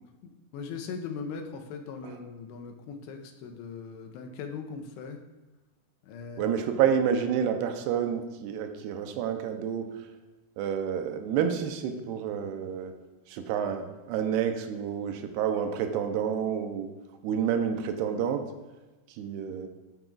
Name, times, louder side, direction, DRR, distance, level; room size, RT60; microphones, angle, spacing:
voice 1, 0.2-5.2 6.0-6.5, left 5 dB, 85° left, 3 dB, 2.9 m, -39 dB
voice 2, 6.4-9.9 10.6-12.9 13.3-16.9 17.2-18.4 19.2-19.7, right 8 dB, 80° right, 6 dB, 2.6 m, -29 dB
9.9 x 9.0 x 2.4 m, 1.2 s
omnidirectional pair, 4.8 m